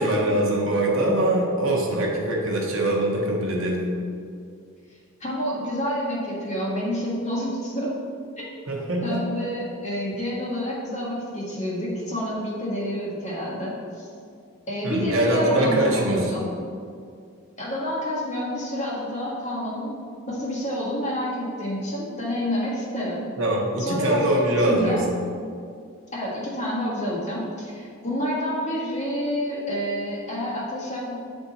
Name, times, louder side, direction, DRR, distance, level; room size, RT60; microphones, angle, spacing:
voice 1, 0.0-3.9 8.7-9.3 14.8-16.4 23.4-25.0, right 1 dB, 65° right, -1 dB, 1.0 m, -23 dB
voice 2, 4.9-8.0 8.4-8.5 9.0-14.1 14.7-16.4 17.6-20.0 20.3-23.3 23.8-25.1 26.1-31.1, equal, 30° left, -6 dB, 1.6 m, -28 dB
7.9 x 3.6 x 4.1 m, 2.3 s
head